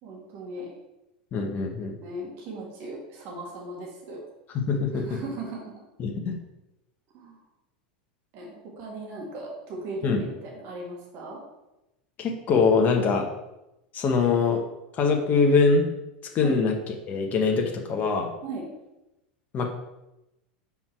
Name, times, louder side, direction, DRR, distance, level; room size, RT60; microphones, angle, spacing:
voice 1, 0.0-0.7 2.0-4.2 4.9-5.7 7.1-7.4 8.3-11.4 16.4-16.6 18.4-18.6, right 2 dB, 50° right, -2 dB, 2.1 m, -37 dB
voice 2, 1.3-2.0 4.5-5.2 6.0-6.4 10.0-10.2 12.2-13.3 13.9-14.6 14.9-15.8 16.3-18.3 19.5-19.7, left 4 dB, 35° left, 2 dB, 1.1 m, -23 dB
5.6 x 4.5 x 4.6 m, 0.92 s
hypercardioid pair, 95°, 5 cm